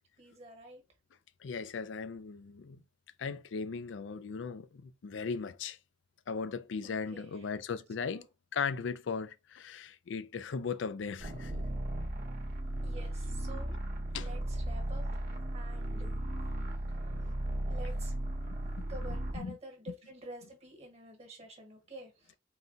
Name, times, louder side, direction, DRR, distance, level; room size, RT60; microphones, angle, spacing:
voice 1, 0.2-0.8 6.8-7.5 8.0-8.2 12.8-13.8 14.2-15.3 15.5-16.2 17.7-18.1 18.9-22.4, right 1 dB, 35° right, 1.3 m, -49 dB
voice 2, 1.4-2.8 3.2-5.8 6.3-8.3 8.5-11.6 14.1-14.3 17.1-17.3 18.4-18.8 19.3-19.6, left 5 dB, 70° left, 0.4 m, -38 dB
sound 1, 11.2-19.4, right 1 dB, 50° right, 1.1 m, -36 dB
4.0 x 2.2 x 3.8 m
head